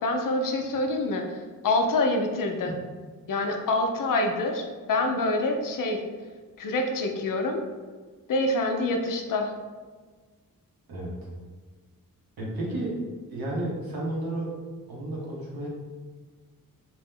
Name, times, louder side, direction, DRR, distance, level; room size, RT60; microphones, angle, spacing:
voice 1, 0.0-1.2 1.6-2.7 3.3-6.0 6.6-7.6 8.3-9.5, left 2 dB, 65° left, 3 dB, 0.5 m, -26 dB
voice 2, 10.9-11.3 12.4-13.0 13.3-14.5 14.9-15.7, right 1 dB, 80° right, -3 dB, 0.9 m, -32 dB
2.9 x 2.0 x 3.6 m, 1.4 s
wide cardioid pair, 100°, 35 cm